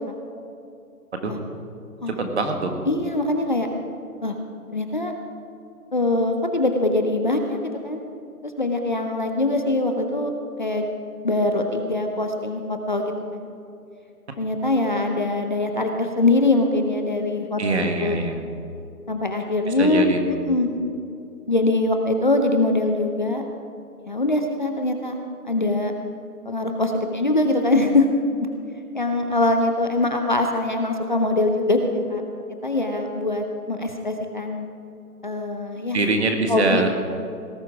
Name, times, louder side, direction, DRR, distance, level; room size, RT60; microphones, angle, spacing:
voice 1, 2.1-2.8 17.6-18.4 19.7-20.2 35.9-36.9, right 3 dB, 45° right, 4 dB, 1.8 m, -23 dB
voice 2, 2.9-3.7 4.2-4.4 4.7-5.1 5.9-8.0 8.4-10.3 10.6-10.8 11.2-13.5 14.4-18.3 19.1-20.7 21.5-23.4 24.1-25.2 25.4-25.9 26.5-28.1 28.9-32.2 32.6-34.6 35.2-36.0 36.5-36.8, left 2 dB, 30° left, 4 dB, 0.7 m, -23 dB
18.5 x 11.0 x 4.7 m, 2.6 s
hypercardioid pair, 165°, 46 cm